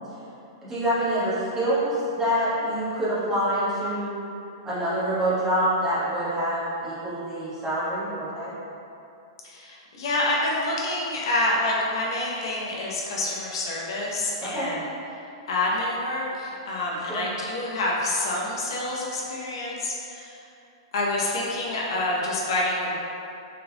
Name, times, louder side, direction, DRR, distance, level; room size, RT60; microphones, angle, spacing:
voice 1, 0.7-4.2 4.6-8.5 14.4-14.8 17.1-17.2, equal, 15° right, -12 dB, 1.4 m, -26 dB
voice 2, 9.4-14.8 15.5-20.4 20.9-22.9, left 2 dB, 70° left, -3 dB, 0.8 m, -27 dB
3.8 x 3.7 x 2.9 m, 2.8 s
hypercardioid pair, 150°, 3 cm